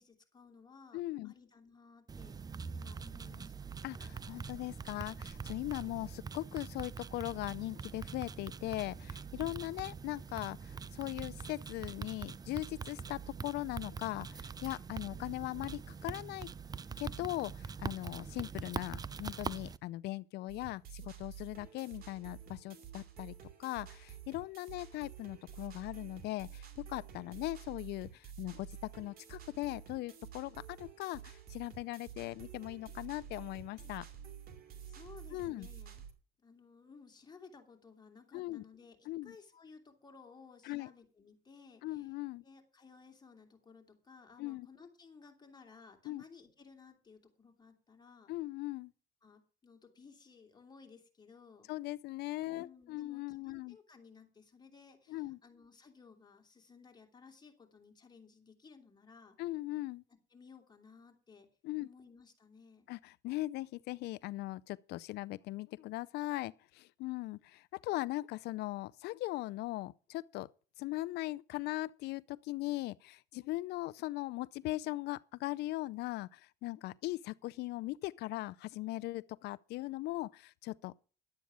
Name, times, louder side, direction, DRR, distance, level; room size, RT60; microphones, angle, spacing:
voice 1, 0.0-2.4 2.7-3.7 9.4-9.7 34.8-36.1 36.4-42.2 42.4-48.3 49.2-51.7 52.5-59.4 60.3-61.5 61.8-62.9, left 5 dB, 25° left, 3.0 m, -58 dB
voice 2, 0.9-1.3 3.8-16.5 17.0-34.0 35.3-35.7 38.3-38.6 39.1-39.3 40.6-40.9 41.8-42.4 44.4-44.7 46.0-46.2 48.3-48.9 51.7-53.8 55.1-55.4 59.4-60.0 61.6-61.9 62.9-70.5 70.8-80.9, left 18 dB, 80° left, 0.5 m, -39 dB
sound 1, 2.1-19.8, right 5 dB, 25° right, 0.5 m, -44 dB
sound 2, 20.5-36.1, right 8 dB, 60° right, 2.7 m, -50 dB
11.5 x 8.3 x 6.1 m
cardioid pair, 110°, 17 cm